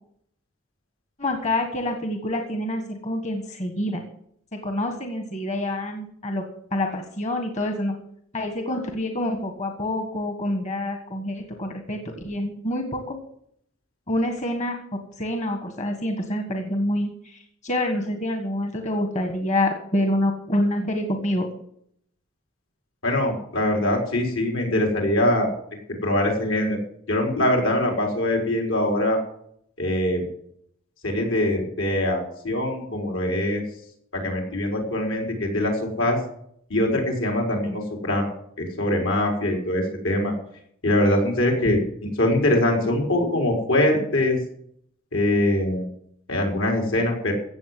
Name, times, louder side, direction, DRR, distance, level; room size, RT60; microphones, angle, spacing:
voice 1, 1.2-4.0 4.5-6.4 6.7-7.9 8.3-12.0 12.2-13.2 14.1-14.8 15.2-21.5 41.7-41.8, left 1 dB, 35° left, 4 dB, 1.6 m, -27 dB
voice 2, 23.0-25.5 26.0-26.8 27.1-29.2 29.8-30.2 31.0-33.6 34.1-36.2 36.7-38.3 38.6-40.3 40.8-41.8 42.2-44.4 45.1-45.8 46.3-47.3, left 1 dB, 75° left, 1 dB, 4.7 m, -23 dB
16.0 x 7.5 x 7.7 m, 0.68 s
head